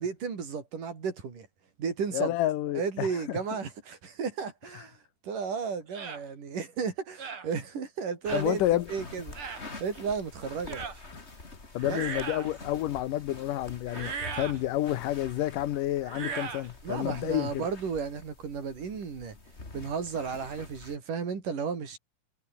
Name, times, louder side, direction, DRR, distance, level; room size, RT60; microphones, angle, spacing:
voice 1, 0.0-1.5 1.8-2.3 2.8-8.6 8.9-10.9 11.8-12.0 16.8-19.4 19.7-22.0, right 6 dB, 85° right, 5.8 m, -34 dB
voice 2, 2.1-3.4 8.3-8.9 11.7-17.6, left 14 dB, 85° left, 2.7 m, -29 dB
sound 1, 5.9-6.2 7.2-7.5 8.3-8.5 9.3-9.7 10.7-11.0 11.8-12.5 13.9-14.6 16.0-16.7, right 6 dB, 45° right, 3.4 m, -37 dB
sound 2, 8.2-21.0, left 3 dB, 20° left, 3.0 m, -46 dB
omnidirectional pair, 3.7 m